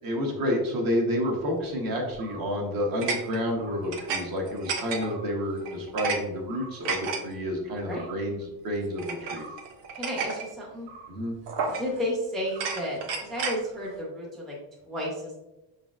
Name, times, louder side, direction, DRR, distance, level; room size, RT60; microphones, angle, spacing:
voice 1, 0.0-9.5 11.1-11.3, equal, 50° right, 0 dB, 1.1 m, -29 dB
sound 1, 2.1-2.5 3.0-4.2 4.5-5.3 5.7-6.2 6.5-7.2 7.9-8.1 9.0-10.5 10.9-11.1 11.5-12.1 12.5-13.6, right 5 dB, 75° right, 0.8 m, -33 dB
voice 2, 10.0-10.9 11.8-14.6 14.9-15.3, equal, ahead, -4 dB, 0.5 m, -32 dB
5.5 x 3.9 x 2.4 m, 1.0 s
cardioid pair, 170°, 45 cm